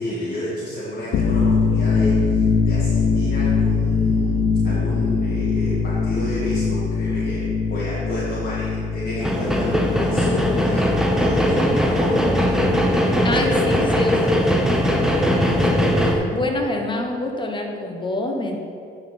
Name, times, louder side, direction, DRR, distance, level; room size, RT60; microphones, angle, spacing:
voice 1, 0.0-12.3, left 1 dB, 50° left, -8 dB, 1.6 m, -31 dB
sound 1, 1.0-12.6, left 5 dB, 70° left, 0.7 m, -22 dB
sound 2, 9.2-16.2, equal, 5° right, 0.8 m, -19 dB
voice 2, 13.2-18.6, left 2 dB, 25° left, 2 dB, 1.1 m, -27 dB
9.3 x 4.3 x 4.3 m, 2.5 s
cardioid pair, 90°, 20 cm